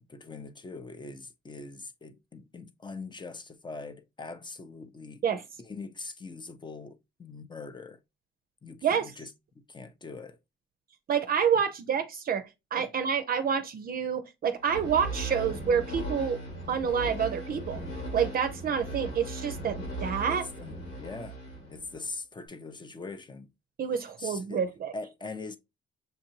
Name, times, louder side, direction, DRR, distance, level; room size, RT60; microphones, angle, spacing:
voice 1, 0.0-5.2 5.6-8.0 8.6-9.3 9.7-10.4 12.8-12.9 20.3-21.4 21.7-23.5 24.2-24.6 24.9-25.6, left 3 dB, 25° left, 0.6 m, -42 dB
voice 2, 11.1-12.4 12.7-16.4 16.7-17.8 18.1-20.5 23.8-24.9, right 7 dB, 50° right, 0.5 m, -28 dB
sound 1, 14.6-22.1, right 1 dB, 85° left, 2.8 m, -38 dB
6.5 x 2.6 x 2.8 m
cardioid pair, 90°, 20 cm